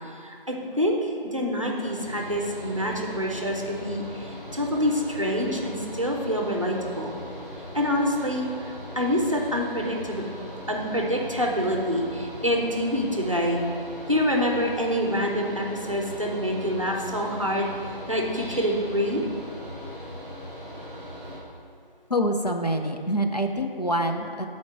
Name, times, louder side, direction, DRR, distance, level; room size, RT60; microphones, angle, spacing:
voice 1, 0.2-7.2 7.7-8.5 9.0-10.2 10.7-13.6 14.1-17.7 18.1-19.2, equal, 35° right, 0 dB, 0.7 m, -26 dB
Mechanical fan, 1.7-21.4, equal, 10° left, 2.0 m, -39 dB
voice 2, 22.1-24.5, equal, 45° left, 4 dB, 0.5 m, -26 dB
7.4 x 4.3 x 6.3 m, 2.3 s
figure-of-eight pair, 175°, 29 cm